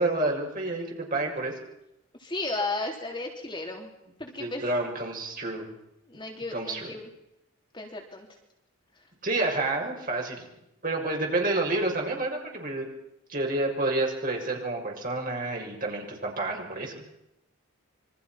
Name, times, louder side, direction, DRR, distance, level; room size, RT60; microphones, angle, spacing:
voice 1, 0.0-1.5 4.4-5.7 6.5-6.9 9.2-10.5 10.8-12.9 13.3-17.0, right 2 dB, 40° right, 0 dB, 6.7 m, -29 dB
voice 2, 2.2-3.9 4.2-4.6 6.1-7.1 7.7-8.3, left 2 dB, 20° left, 1 dB, 3.5 m, -34 dB
27.5 x 24.5 x 6.1 m, 0.84 s
head